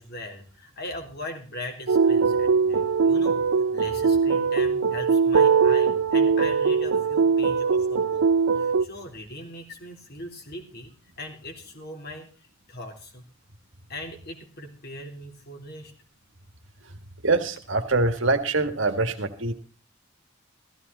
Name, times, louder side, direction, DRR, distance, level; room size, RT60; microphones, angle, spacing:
voice 1, 0.0-8.2 8.5-13.2 13.9-15.9, left 1 dB, 50° left, 2 dB, 3.6 m, -40 dB
sound 1, 1.9-8.8, right 5 dB, 80° right, 0.6 m, -21 dB
voice 2, 17.2-19.5, right 3 dB, 60° right, 8 dB, 1.7 m, -24 dB
15.5 x 15.0 x 4.1 m, 0.36 s
head